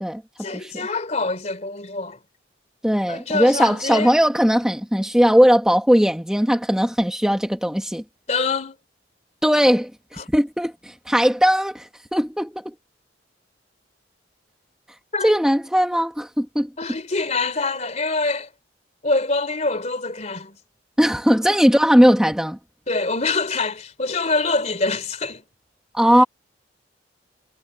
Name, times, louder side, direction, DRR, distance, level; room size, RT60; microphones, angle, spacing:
voice 1, 0.4-2.2 3.1-4.1 8.3-8.8 10.2-10.3 15.1-15.4 16.8-18.5 19.0-20.6 21.5-21.6 22.9-25.4, left 3 dB, 40° left, 3.2 m, -25 dB
voice 2, 2.8-8.0 9.4-9.9 10.3-12.6 15.2-16.7 21.0-22.6 25.9-26.2, equal, 5° right, 1.5 m, -18 dB
head